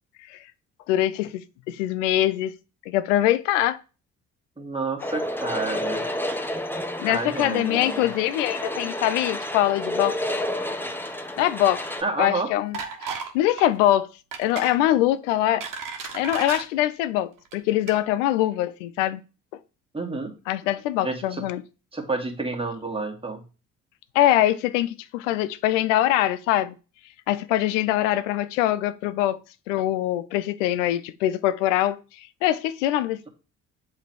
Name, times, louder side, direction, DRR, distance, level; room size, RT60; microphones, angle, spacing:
voice 1, 0.9-2.5 2.9-3.8 7.0-10.2 11.4-11.8 12.2-14.1 14.4-15.7 16.1-19.2 20.5-21.6 24.1-26.7 27.3-29.4 29.7-33.3, left 13 dB, 85° left, 0.5 m, -23 dB
voice 2, 4.6-6.0 7.0-8.0 12.0-12.5 19.9-20.3 21.0-21.4 21.9-23.4, right 3 dB, 15° right, 2.0 m, -29 dB
sound 1, 5.0-12.0, left 1 dB, 5° left, 1.0 m, -30 dB
sound 2, 12.7-13.3 13.6-13.8 14.3-14.8 15.3-16.6 17.4-17.5 17.9-18.0, right 5 dB, 65° right, 1.3 m, -34 dB
7.8 x 3.4 x 4.7 m
hypercardioid pair, 50°, 36 cm